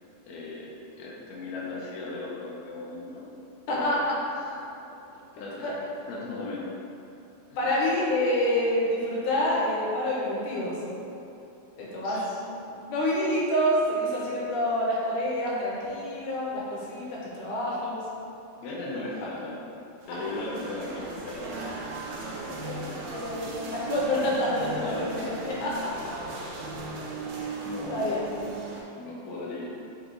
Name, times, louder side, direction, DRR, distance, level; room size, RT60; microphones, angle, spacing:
voice 1, 0.2-3.2 3.7-4.0 4.5-4.6 5.3-5.7 6.1-6.7 7.5-7.7 12.0-12.2 18.5-19.6 20.1-21.5 24.8-25.6 27.6-28.2 29.0-29.8, left 2 dB, 90° left, -5 dB, 1.6 m, -37 dB
voice 2, 3.7-4.2 5.6-5.7 7.6-10.8 11.8-18.0 19.1-19.3 20.1-20.2 22.2-25.9 27.4-27.5 27.9-28.2, left 1 dB, 70° left, -5 dB, 2.1 m, -28 dB
sound 1, 20.0-28.8, right 3 dB, 85° right, 1.7 m, -37 dB
6.1 x 2.3 x 3.7 m, 2.8 s
omnidirectional pair, 4.2 m